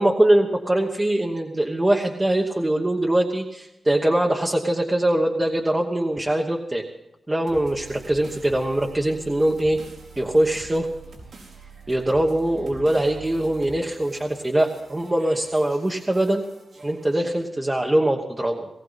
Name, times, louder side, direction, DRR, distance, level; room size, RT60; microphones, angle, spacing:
voice 1, 0.0-6.8 7.3-9.8 10.2-10.9 11.9-16.4 16.8-18.7, right 1 dB, 15° right, 1 dB, 1.1 m, -22 dB
sound 1, 7.5-17.5, right 3 dB, 85° right, 4.7 m, -45 dB
19.0 x 17.5 x 4.1 m, 0.89 s
wide cardioid pair, 175°, 0 cm